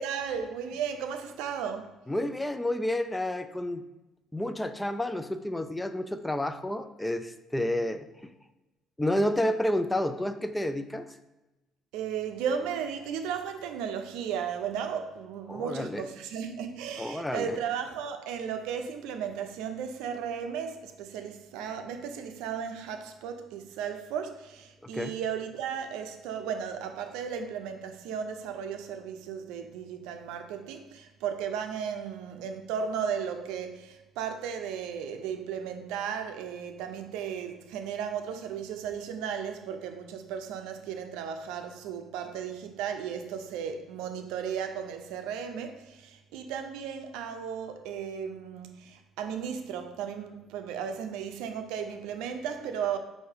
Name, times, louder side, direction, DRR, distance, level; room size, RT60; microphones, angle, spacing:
voice 1, 0.0-1.9 11.9-53.0, right 7 dB, 85° right, 0.5 m, -35 dB
voice 2, 2.1-3.8 4.3-8.1 9.0-11.2 15.5-16.1 17.0-17.6 24.9-25.1, left 1 dB, 10° left, 0.3 m, -30 dB
5.6 x 2.6 x 3.3 m
cardioid pair, 90°, 0 cm